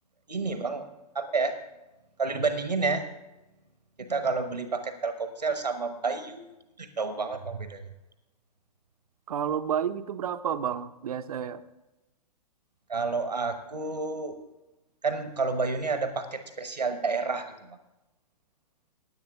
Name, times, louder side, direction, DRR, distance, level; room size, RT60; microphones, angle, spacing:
voice 1, 0.3-0.8 1.1-1.5 2.2-3.0 4.1-6.5 6.8-7.8 12.9-14.3 15.0-17.8, right 4 dB, 90° right, 9 dB, 1.1 m, -30 dB
voice 2, 9.3-11.6, right 8 dB, 65° right, 12 dB, 0.7 m, -30 dB
16.5 x 10.0 x 3.5 m, 0.99 s
figure-of-eight pair, 115°, 21 cm